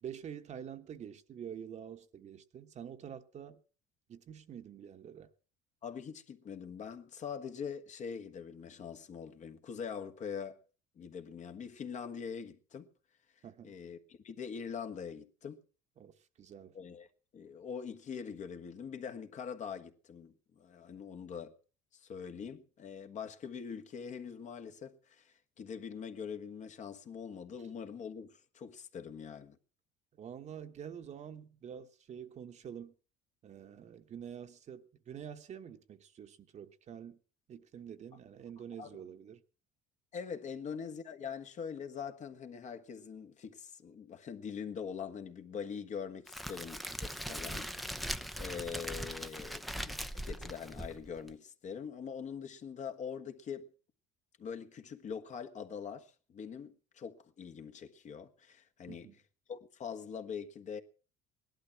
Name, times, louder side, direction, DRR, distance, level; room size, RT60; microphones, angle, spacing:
voice 1, 0.0-3.6 4.1-5.3 13.4-13.8 16.0-16.7 30.2-32.9 33.4-37.2 37.5-39.4 47.3-47.6 58.9-59.2, right 8 dB, 45° right, 1.2 m, -47 dB
voice 2, 5.8-10.6 10.9-12.9 13.6-15.6 16.7-17.1 17.3-21.6 21.9-29.6 38.8-38.9 40.1-47.7 48.3-53.7 54.4-59.1 59.5-60.8, left 6 dB, 45° left, 1.5 m, -43 dB
Crackle, 46.3-51.3, equal, ahead, 0.7 m, -40 dB
17.5 x 11.5 x 5.8 m
supercardioid pair, 95°, 17 cm